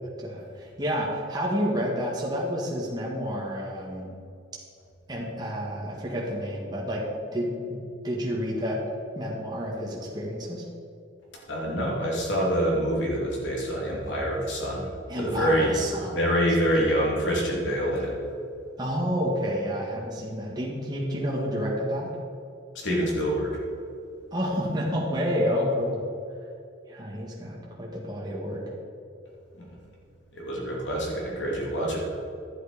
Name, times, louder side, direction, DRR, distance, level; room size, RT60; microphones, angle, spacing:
voice 1, 0.2-4.1 5.1-8.8 9.1-10.6 15.1-16.3 16.8-16.9 18.8-22.1 24.3-26.0 26.9-28.6, equal, 20° right, -4 dB, 1.7 m, -29 dB
voice 2, 11.5-15.8 16.1-18.2 22.7-23.6 29.6-29.7 30.3-32.0, equal, 75° left, -3 dB, 2.8 m, -26 dB
11.5 x 7.9 x 5.0 m, 2.5 s
head